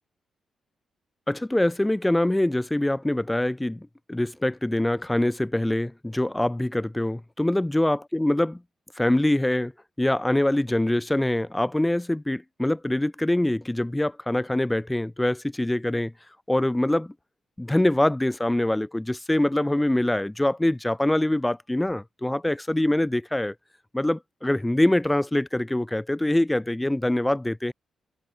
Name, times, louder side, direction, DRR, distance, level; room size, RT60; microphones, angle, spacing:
voice 1, 1.3-8.6 9.0-9.7 10.0-16.1 16.5-17.1 17.6-23.5 23.9-27.7, left 1 dB, 10° left, 0.6 m, -24 dB
supercardioid pair, 50°, 0 cm